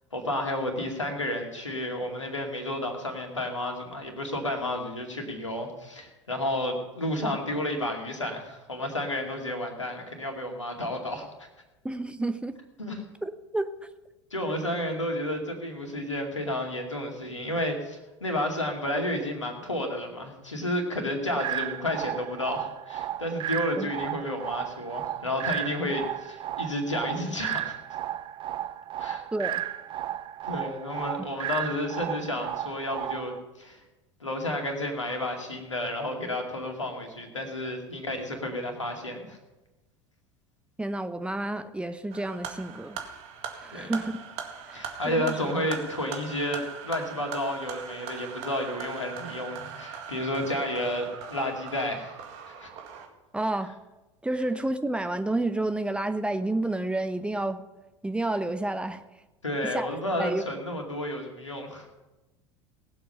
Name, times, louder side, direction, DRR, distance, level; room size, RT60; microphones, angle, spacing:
voice 1, 0.1-11.5 12.8-13.0 14.3-27.8 29.0-29.2 30.4-33.8 34.2-39.4 43.7-44.0 44.7-52.2 52.5-52.7 59.4-61.9, left 1 dB, 85° left, 3 dB, 2.3 m, -31 dB
voice 2, 11.8-12.5 13.2-13.7 23.8-23.9 29.3-29.6 40.8-43.0 43.6-44.2 44.7-45.3 53.3-53.7 54.2-57.6 58.0-59.0 59.6-59.9 60.2-60.4, right 2 dB, 5° right, 10 dB, 0.8 m, -30 dB
sound 1, 21.4-33.4, right 12 dB, 35° right, 0.5 m, -34 dB
sound 2, 42.1-53.1, right 7 dB, 50° right, 1.9 m, -40 dB
19.0 x 7.8 x 5.7 m, 1.1 s
figure-of-eight pair, 75°, 15 cm